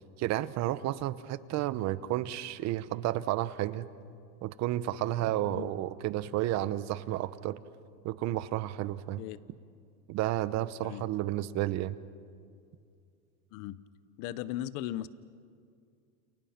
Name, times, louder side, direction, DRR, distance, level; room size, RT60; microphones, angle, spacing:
voice 1, 0.2-3.9 4.4-7.6 8.0-9.2 10.1-12.0, right 14 dB, 45° right, 15 dB, 1.1 m, -31 dB
voice 2, 14.2-15.1, left 13 dB, 55° left, 16 dB, 1.0 m, -37 dB
30.0 x 29.0 x 6.0 m, 2.3 s
supercardioid pair, 130°, 37 cm